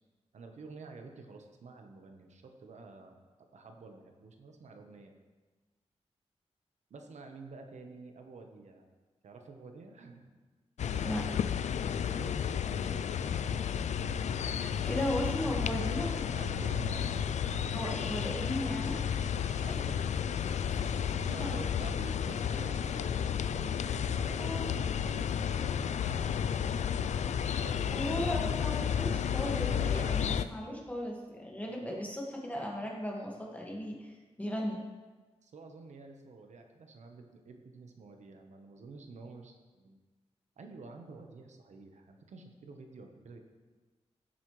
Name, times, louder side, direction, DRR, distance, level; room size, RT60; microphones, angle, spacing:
voice 1, 0.3-3.2 3.5-5.1 6.9-8.9 9.2-10.4 12.1-13.4 16.3-17.6 19.3-20.0 21.2-24.5 24.8-26.3 27.3-28.0 29.4-30.2 31.9-32.0 35.4-40.0 40.6-43.4, right 3 dB, 90° right, 4 dB, 1.1 m, -49 dB
sound 1, 10.8-30.4, left 8 dB, 85° left, 0.4 m, -32 dB
voice 2, 14.5-16.2 17.7-19.0 21.4-21.5 24.4-24.7 27.4-27.6 27.9-34.8, equal, 10° left, -2 dB, 1.8 m, -36 dB
15.5 x 8.4 x 3.2 m, 1.3 s
wide cardioid pair, 135°, 12 cm